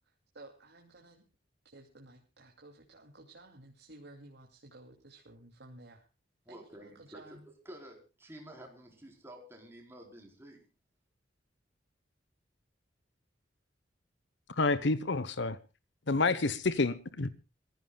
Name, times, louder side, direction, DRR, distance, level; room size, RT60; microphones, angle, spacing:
voice 1, 0.3-1.2 1.6-6.1 6.5-7.4, right 2 dB, 60° right, 2.8 m, -54 dB
voice 2, 6.5-10.6, right 1 dB, 15° right, 4.3 m, -51 dB
voice 3, 14.6-15.6 16.1-17.3, left 3 dB, 65° left, 1.0 m, -29 dB
27.0 x 15.5 x 2.3 m
head